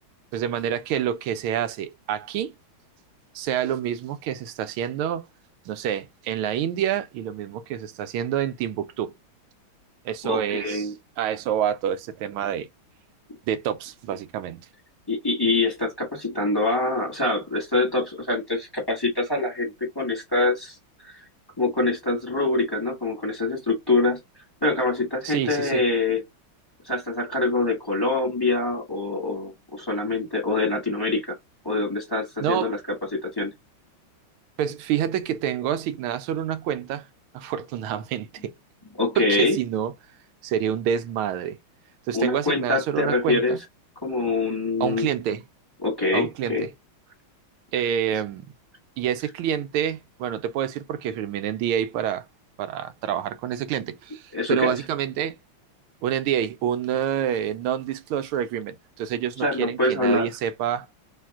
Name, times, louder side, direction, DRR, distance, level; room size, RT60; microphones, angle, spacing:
voice 1, 0.3-2.5 3.3-5.3 5.7-9.1 10.0-10.9 11.2-12.7 13.5-14.6 25.2-25.8 32.4-32.7 34.6-37.1 37.3-38.5 39.2-39.9 40.4-41.6 42.1-43.6 44.8-45.4 46.1-46.5 47.7-48.4 49.0-52.2 52.6-55.4 56.0-60.9, right 9 dB, 90° right, 1.5 m, -27 dB
voice 2, 10.2-10.9 15.1-20.8 21.0-21.2 21.6-24.2 24.6-26.2 26.8-31.4 31.6-32.8 33.1-33.5 39.0-39.6 42.1-43.5 44.0-45.1 45.8-46.7 54.3-54.7 59.4-60.3, left 2 dB, 15° left, 1.2 m, -25 dB
3.5 x 3.2 x 3.5 m
omnidirectional pair, 2.3 m